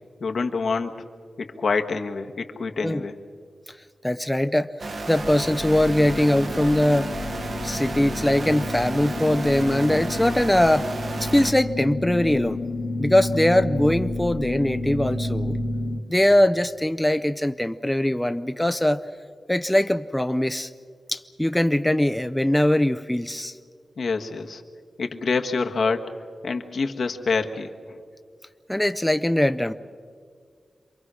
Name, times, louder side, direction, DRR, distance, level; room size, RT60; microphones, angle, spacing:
voice 1, 0.2-0.9 1.4-3.1 24.0-24.6 25.0-26.1 26.4-27.7, left 4 dB, 70° left, 4 dB, 1.4 m, -26 dB
voice 2, 4.0-4.7 5.1-7.1 7.6-10.9 11.2-12.6 13.0-15.6 16.1-19.0 19.5-20.7 21.1-23.6 28.7-29.7, left 1 dB, 10° left, 9 dB, 0.5 m, -21 dB
sound 1, 4.8-11.5, right 3 dB, 55° right, 1.2 m, -33 dB
sound 2, 5.2-16.0, left 2 dB, 90° left, 2.1 m, -31 dB
27.5 x 23.0 x 6.3 m, 2.1 s
wide cardioid pair, 125°, 0 cm